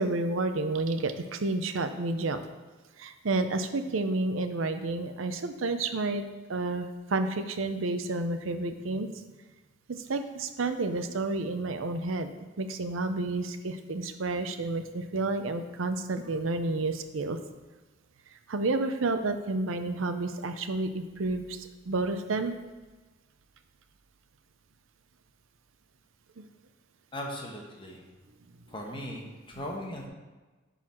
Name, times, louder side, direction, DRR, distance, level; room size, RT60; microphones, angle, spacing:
voice 1, 0.0-2.4 3.0-6.2 6.5-9.1 9.9-12.3 12.6-17.4 18.5-22.6 26.4-26.5, right 2 dB, 90° right, 9 dB, 0.6 m, -30 dB
voice 2, 27.1-28.0 28.7-30.1, left 1 dB, 25° left, 0 dB, 1.2 m, -38 dB
11.0 x 4.1 x 4.3 m, 1.2 s
head